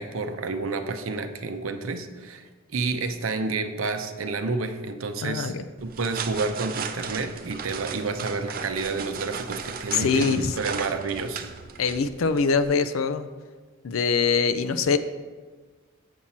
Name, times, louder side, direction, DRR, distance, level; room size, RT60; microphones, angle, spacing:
voice 1, 0.0-5.5 5.8-11.4, right 3 dB, 80° right, 7 dB, 0.7 m, -30 dB
voice 2, 5.2-5.7 9.9-10.6 11.8-13.3 13.8-15.0, left 5 dB, 80° left, 10 dB, 0.5 m, -23 dB
sound 1, 5.8-12.6, right 6 dB, 45° right, 0.5 m, -36 dB
7.6 x 7.3 x 4.2 m, 1.4 s
head